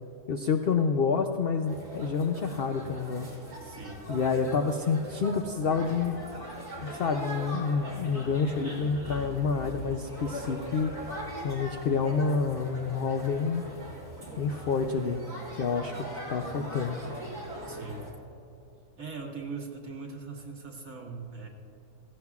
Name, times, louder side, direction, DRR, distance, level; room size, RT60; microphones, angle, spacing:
voice 1, 0.3-3.3 4.1-6.2 6.8-11.1 11.4-13.6 14.4-15.2 15.5-16.0 16.3-17.0, left 5 dB, 75° left, 6 dB, 0.5 m, -28 dB
sound 1, 1.6-18.1, equal, 25° right, 2.9 m, -41 dB
voice 2, 3.6-4.0 17.6-18.0 19.0-21.5, right 4 dB, 60° right, -2 dB, 2.1 m, -40 dB
16.5 x 15.5 x 2.4 m, 2.9 s
omnidirectional pair, 1.6 m